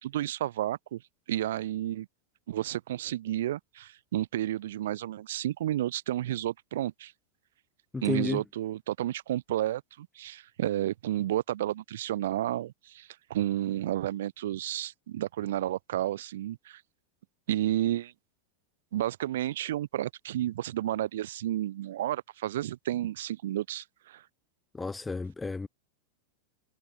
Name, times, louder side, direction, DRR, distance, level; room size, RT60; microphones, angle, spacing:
voice 1, 0.0-1.0 1.3-2.1 2.5-7.1 8.0-16.8 17.5-18.1 18.9-24.2, right 13 dB, 60° right, 3.3 m, -31 dB
voice 2, 7.9-8.4 24.7-25.7, left 3 dB, 10° left, 1.6 m, -32 dB
figure-of-eight pair, 90°, 0 cm